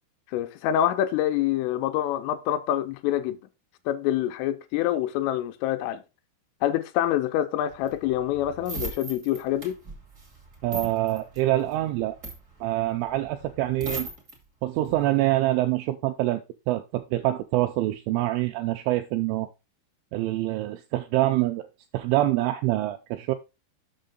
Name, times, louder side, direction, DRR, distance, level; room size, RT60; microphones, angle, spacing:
voice 1, 0.3-3.4 3.9-6.0 6.6-9.8, left 12 dB, 80° left, 3.0 m, -26 dB
sound 1, 7.7-14.3 14.8-15.1, right 3 dB, 70° right, 0.7 m, -38 dB
voice 2, 10.6-12.2 12.6-14.1 14.6-19.5 20.1-21.7 21.9-23.4, right 16 dB, 85° right, 2.7 m, -25 dB
7.4 x 6.3 x 3.7 m
omnidirectional pair, 5.9 m